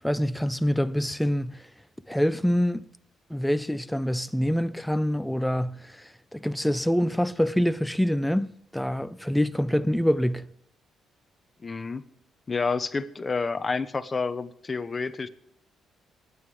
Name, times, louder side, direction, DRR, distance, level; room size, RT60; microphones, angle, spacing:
voice 1, 0.0-1.6 2.1-2.8 3.3-10.5, equal, 5° left, 0.6 m, -26 dB
voice 2, 11.6-12.0 12.5-15.3, left 4 dB, 30° left, 1.0 m, -29 dB
22.5 x 9.6 x 3.3 m
cardioid pair, 90°, 0 cm